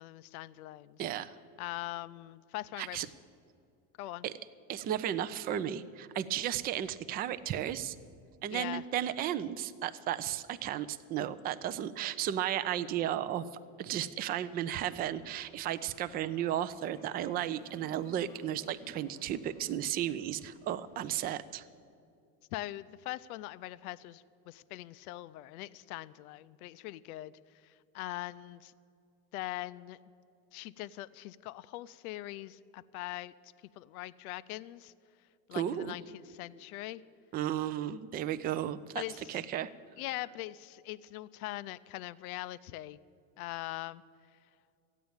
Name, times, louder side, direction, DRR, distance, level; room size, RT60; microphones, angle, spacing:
voice 1, 0.0-1.0 1.6-3.1 4.0-4.3 8.5-8.8 22.5-27.3 27.6-28.7 29.3-30.0 30.5-34.9 35.5-37.0 39.0-39.4 40.0-43.0 43.4-44.0, left 16 dB, 80° left, 16 dB, 0.6 m, -42 dB
voice 2, 1.0-1.4 2.8-3.1 4.2-4.3 4.7-8.0 8.4-13.5 13.8-21.6 35.5-36.0 37.3-39.0 39.3-39.7, right 11 dB, 25° right, 13 dB, 0.3 m, -34 dB
sound 1, 14.5-21.1, equal, 5° left, 1.1 m, -58 dB
14.0 x 9.2 x 8.7 m, 2.5 s
supercardioid pair, 125°, 43 cm